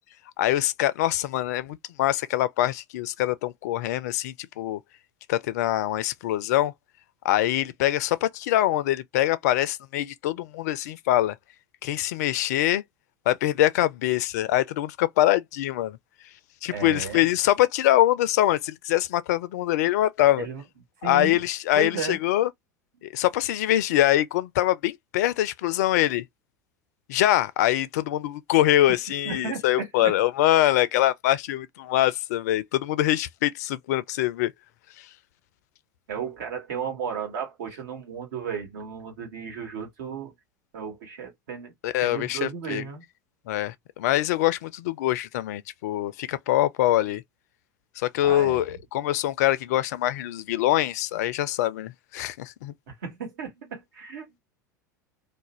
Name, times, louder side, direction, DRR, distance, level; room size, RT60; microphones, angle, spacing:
voice 1, 0.4-4.8 5.3-6.7 7.2-11.4 11.8-12.8 13.3-16.0 16.6-20.5 21.0-22.5 23.0-26.2 27.1-34.5 35.0-35.1 41.8-42.8 43.5-47.2 48.0-52.7, left 14 dB, 60° left, 0.4 m, -24 dB
voice 2, 16.7-17.2 20.4-20.6 21.0-21.4 21.7-22.2 29.2-30.2 36.1-40.3 40.7-41.7 42.0-43.0 48.2-48.6 52.9-54.4, right 6 dB, 65° right, 1.3 m, -34 dB
2.4 x 2.1 x 3.0 m
figure-of-eight pair, 80°, 10 cm